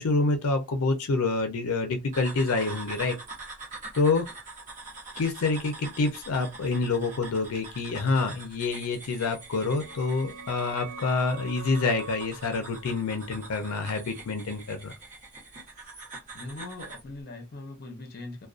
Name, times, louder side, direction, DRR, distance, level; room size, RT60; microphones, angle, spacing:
voice 1, 0.0-3.2 3.9-4.3 5.2-14.9, left 3 dB, 90° left, 0.5 m, -27 dB
sound 1, 2.1-17.1, right 3 dB, 35° right, 0.9 m, -44 dB
sound 2, 9.3-14.7, right 3 dB, 65° right, 0.5 m, -45 dB
voice 2, 16.3-18.5, left 2 dB, 45° left, 0.6 m, -41 dB
2.4 x 2.2 x 2.4 m
head